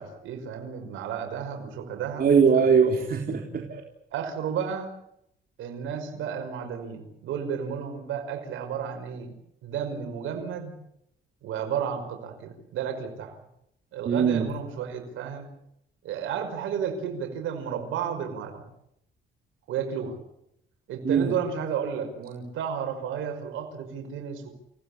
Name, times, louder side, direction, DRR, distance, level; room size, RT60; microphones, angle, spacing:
voice 1, 0.0-2.3 2.9-3.0 4.1-4.9 5.6-9.3 9.6-10.7 11.4-13.4 13.9-15.5 16.0-18.6 19.7-20.2 20.9-24.5, right 7 dB, 85° right, 4 dB, 5.6 m, -32 dB
voice 2, 2.2-3.8 14.1-14.5 21.0-21.3, right 6 dB, 50° right, 3 dB, 4.0 m, -21 dB
29.0 x 17.5 x 8.7 m, 0.76 s
cardioid pair, 90°, 20 cm